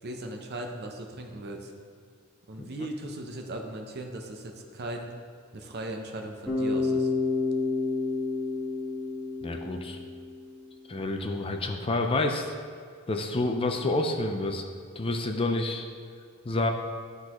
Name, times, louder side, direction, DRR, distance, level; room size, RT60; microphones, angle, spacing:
voice 1, 0.0-1.7 2.5-5.1 5.5-7.1, right 1 dB, 50° right, 3 dB, 0.7 m, -38 dB
Bass guitar, 6.5-10.5, left 3 dB, 5° left, 1.3 m, -29 dB
voice 2, 9.4-10.0 10.9-12.5 13.1-14.6 15.0-15.9 16.4-16.7, left 2 dB, 25° left, 4 dB, 0.4 m, -28 dB
11.5 x 3.9 x 3.0 m, 2.2 s
head